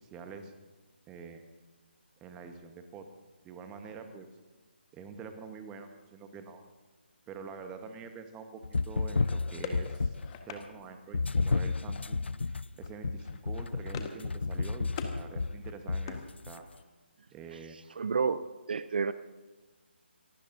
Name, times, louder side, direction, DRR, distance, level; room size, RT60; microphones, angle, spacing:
voice 1, 0.0-0.5 1.1-1.4 2.2-3.1 3.4-4.3 4.9-6.6 7.3-8.6 8.9-10.1 10.5-16.6 17.3-17.8, right 5 dB, 15° right, 7 dB, 1.2 m, -46 dB
sound 1, 8.6-10.4 11.1-16.6, left 4 dB, 75° left, 0.4 m, -32 dB
sound 2, 9.2-10.7 12.0-12.4 12.6-12.9 13.2-14.3 14.5-15.2 15.6-16.8, left 7 dB, 25° left, 1.4 m, -44 dB
voice 2, 18.0-19.1, right 5 dB, 55° right, 14 dB, 0.6 m, -30 dB
25.5 x 17.5 x 2.7 m, 1.3 s
figure-of-eight pair, 150°, 6 cm